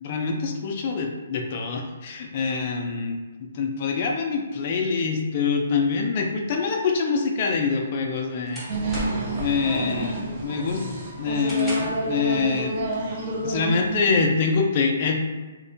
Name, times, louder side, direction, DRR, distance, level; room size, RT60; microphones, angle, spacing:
voice 1, 0.0-8.6 9.3-10.8 11.2-12.8 13.4-15.1, left 4 dB, 40° left, 2 dB, 0.4 m, -25 dB
sound 1, 7.6-9.4 9.8-10.2 10.6-12.1, equal, ahead, 0.7 m, -38 dB
sound 2, 8.7-14.2, right 1 dB, 45° right, 0.6 m, -29 dB
2.7 x 2.1 x 2.5 m, 1.3 s
hypercardioid pair, 150°, 0 cm